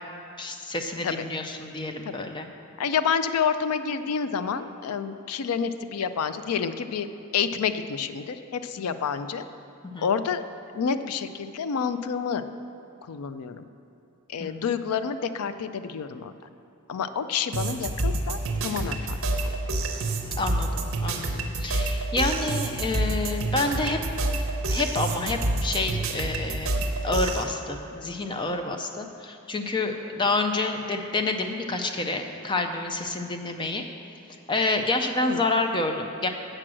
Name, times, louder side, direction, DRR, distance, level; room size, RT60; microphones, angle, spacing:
voice 1, 0.4-2.5 8.9-9.0 9.9-10.1 14.4-14.7 20.4-24.0 24.6-33.8 34.5-36.3, left 2 dB, 20° left, 5 dB, 0.4 m, -28 dB
voice 2, 2.8-7.1 7.3-9.4 10.0-10.4 10.7-12.4 13.1-13.6 14.3-16.3 16.9-19.2 35.2-35.4, left 6 dB, 90° left, 11 dB, 0.4 m, -28 dB
sound 1, 17.5-27.4, right 2 dB, 60° right, 0.8 m, -28 dB
7.7 x 6.1 x 6.1 m, 2.6 s
head